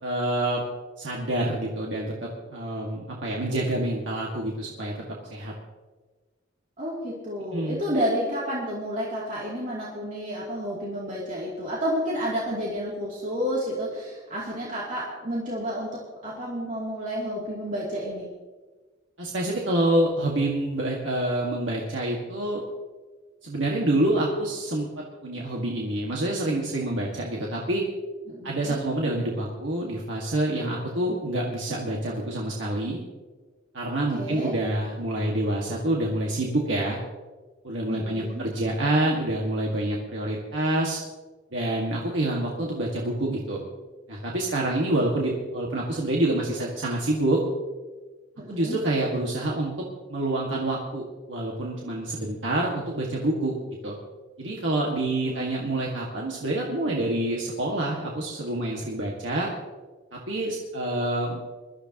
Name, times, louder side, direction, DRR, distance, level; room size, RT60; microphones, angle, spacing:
voice 1, 0.0-0.6 1.0-4.9 5.3-5.5 7.5-7.8 19.2-22.6 23.4-27.8 28.4-33.0 33.7-37.0 37.6-41.0 41.5-43.6 44.1-47.4 48.5-49.7 50.1-53.5 53.8-54.0 54.4-59.5 60.1-61.4, right 1 dB, 75° right, -2 dB, 1.8 m, -27 dB
voice 2, 6.8-18.3 28.3-28.8 31.0-31.2 34.1-34.5 37.9-38.5 48.4-48.8 55.2-55.8, equal, 40° right, -6 dB, 2.7 m, -31 dB
21.5 x 13.5 x 2.9 m, 1.3 s
head